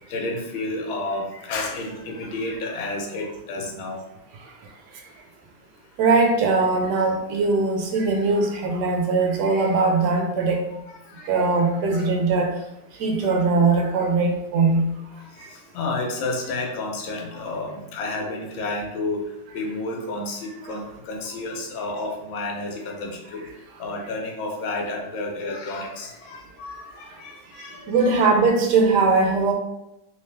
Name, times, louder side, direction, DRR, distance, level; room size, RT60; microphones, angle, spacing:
voice 1, 0.1-4.0 7.0-7.1 10.9-11.6 11.9-12.1 15.2-19.2 19.5-23.5 23.8-28.4, left 2 dB, 75° left, 1 dB, 1.5 m, -31 dB
voice 2, 6.0-10.6 11.2-12.5 13.0-14.9 15.4-15.5 20.7-20.8 27.9-29.5, right 3 dB, 70° right, 2 dB, 1.1 m, -20 dB
3.2 x 3.1 x 3.2 m, 0.88 s
omnidirectional pair, 2.2 m